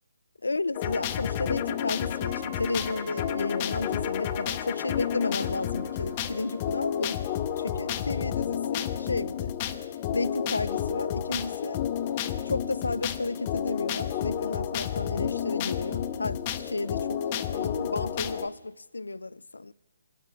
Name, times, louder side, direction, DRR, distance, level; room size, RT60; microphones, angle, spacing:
voice 1, 0.4-7.2 7.6-9.6 10.1-11.8 12.4-17.2 17.5-19.7, left 3 dB, 85° left, 0.4 m, -33 dB
sound 1, 0.7-18.5, left 9 dB, 30° left, 0.7 m, -31 dB
Wind instrument woodwind instrument, 2.2-8.0, right 9 dB, 30° right, 1.6 m, -52 dB
23.5 x 12.5 x 3.4 m
figure-of-eight pair, 150°, 0 cm